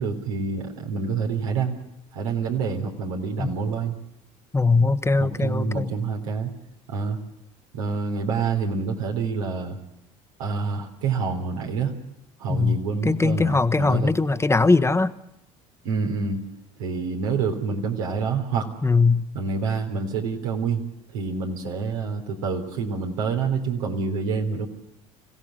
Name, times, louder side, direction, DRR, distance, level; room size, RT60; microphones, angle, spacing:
voice 1, 0.0-1.8 2.1-4.0 5.2-6.5 6.9-7.2 7.7-9.8 10.4-11.9 12.4-14.1 15.8-16.4 16.8-18.7 19.3-24.7, right 5 dB, 85° right, 2 dB, 3.5 m, -27 dB
voice 2, 4.5-5.9 12.5-12.8 13.0-15.1 18.8-19.2, left 3 dB, 15° left, 9 dB, 1.3 m, -20 dB
26.0 x 16.5 x 7.7 m, 0.80 s
hypercardioid pair, 75°, 17 cm